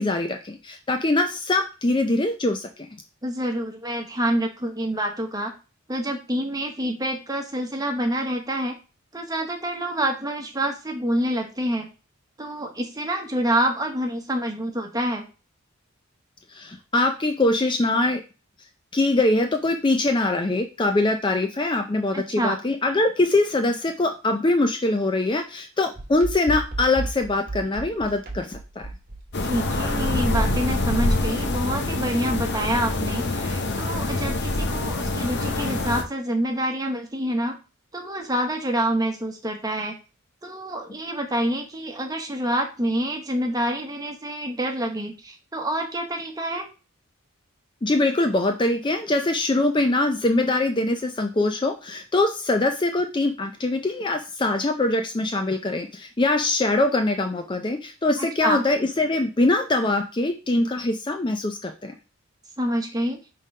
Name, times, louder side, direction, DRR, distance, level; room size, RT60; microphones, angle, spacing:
voice 1, 0.0-2.9 16.5-18.2 18.9-28.9 47.8-62.0, left 2 dB, 20° left, 6 dB, 0.5 m, -23 dB
voice 2, 3.2-5.5 5.9-8.8 9.1-11.9 12.4-15.3 22.1-22.6 29.4-37.5 37.9-39.9 40.4-46.7 58.2-58.7 62.6-63.2, right 1 dB, 15° right, 3 dB, 1.1 m, -27 dB
sound 1, 25.9-32.8, right 2 dB, 45° right, 1.2 m, -35 dB
sound 2, 29.3-36.0, left 2 dB, 55° left, 0.9 m, -25 dB
5.5 x 3.7 x 5.4 m, 0.32 s
head